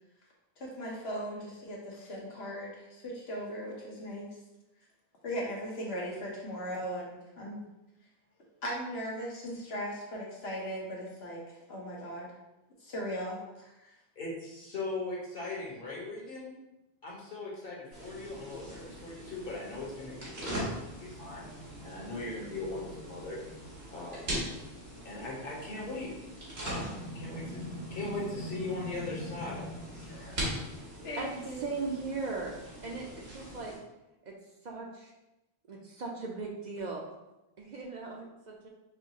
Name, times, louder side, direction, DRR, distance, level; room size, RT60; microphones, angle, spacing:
voice 1, 0.6-4.3 5.2-7.6 8.6-12.3 12.8-13.7 31.0-31.6, equal, 80° left, -3 dB, 1.3 m, -38 dB
voice 2, 14.2-16.6 17.0-23.4 23.9-24.3 25.0-26.1 26.6-27.6 27.9-29.7 30.0-30.5, left 2 dB, 60° left, -4 dB, 1.3 m, -39 dB
sound 1, 17.9-33.8, equal, 80° right, 1.5 m, -41 dB
voice 3, 31.2-32.6 32.8-33.7 34.2-34.3 34.6-35.1 35.7-37.1 37.6-38.7, right 3 dB, 50° right, -1 dB, 0.6 m, -38 dB
5.7 x 2.4 x 2.9 m, 0.95 s
omnidirectional pair, 1.0 m